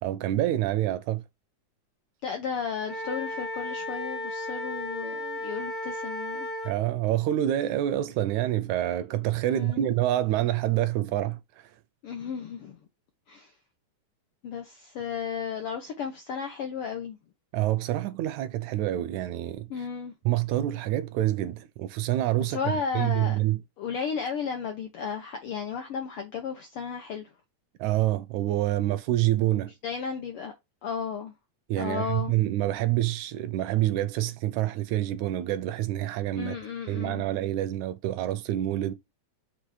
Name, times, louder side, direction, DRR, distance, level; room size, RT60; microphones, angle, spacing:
voice 1, 0.0-1.2 6.7-11.7 17.5-19.7 20.3-22.6 22.9-23.6 27.8-29.7 31.7-36.6 36.9-38.9, right 13 dB, 80° right, 1.9 m, -27 dB
voice 2, 2.2-6.5 9.5-9.8 12.0-12.8 13.3-13.5 14.4-17.2 19.7-20.1 22.4-23.4 23.8-27.3 29.8-30.5 30.8-31.3 31.8-32.3 36.3-37.3, left 6 dB, 75° left, 1.3 m, -34 dB
Wind instrument woodwind instrument, 2.8-6.7, left 1 dB, 40° left, 0.6 m, -34 dB
6.5 x 3.2 x 4.9 m
omnidirectional pair, 3.5 m